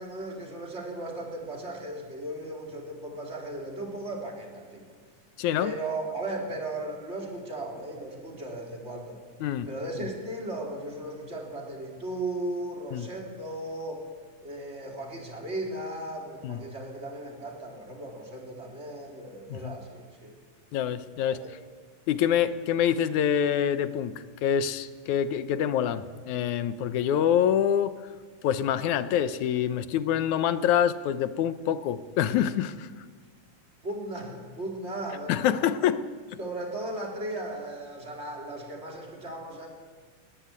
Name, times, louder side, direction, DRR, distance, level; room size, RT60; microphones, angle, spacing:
voice 1, 0.0-5.0 5.6-9.2 9.7-14.0 14.4-20.4 21.3-21.4 33.8-35.6 36.4-39.7, right 1 dB, 20° right, 1 dB, 4.0 m, -36 dB
voice 2, 5.4-5.7 9.4-9.7 12.9-13.1 16.4-16.6 19.5-19.7 20.7-21.4 22.1-28.0 28.4-32.9 35.3-36.0, left 9 dB, 70° left, 13 dB, 2.2 m, -26 dB
19.5 x 19.0 x 9.7 m, 1.5 s
omnidirectional pair, 3.7 m